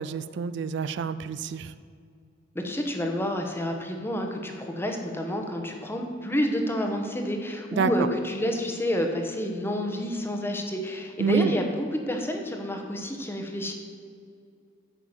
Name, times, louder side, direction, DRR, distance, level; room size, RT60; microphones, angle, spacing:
voice 1, 0.0-1.7 7.7-8.1 11.2-11.5, right 5 dB, 65° right, 14 dB, 0.3 m, -27 dB
voice 2, 2.5-13.7, equal, 10° left, 3 dB, 1.1 m, -29 dB
9.1 x 6.1 x 7.2 m, 2.3 s
head